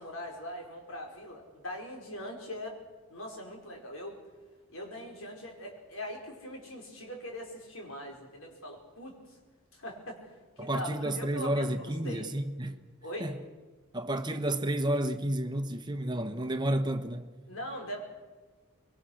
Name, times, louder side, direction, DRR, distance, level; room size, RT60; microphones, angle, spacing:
voice 1, 0.0-2.8 3.1-4.2 4.7-9.4 9.7-11.7 12.0-12.3 13.0-13.3 17.5-18.0, left 1 dB, 75° left, 5.3 m, -41 dB
voice 2, 10.6-12.8 13.2-13.4 13.9-17.3, right 1 dB, 20° right, 1.2 m, -31 dB
25.5 x 22.5 x 6.5 m
head